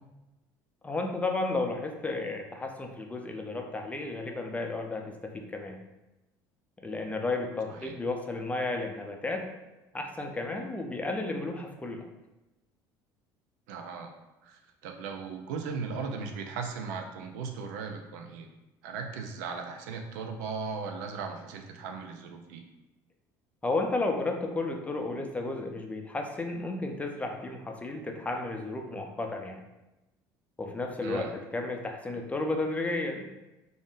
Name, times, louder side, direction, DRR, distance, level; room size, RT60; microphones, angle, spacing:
voice 1, 0.8-5.8 6.8-9.5 9.9-12.1 23.6-29.6 30.6-33.3, left 2 dB, 15° left, 3 dB, 0.4 m, -33 dB
voice 2, 13.7-14.1 14.4-18.5 18.8-22.6 31.0-31.3, right 5 dB, 85° right, 4 dB, 0.4 m, -37 dB
2.5 x 2.1 x 3.6 m, 1.0 s
supercardioid pair, 90°, 9 cm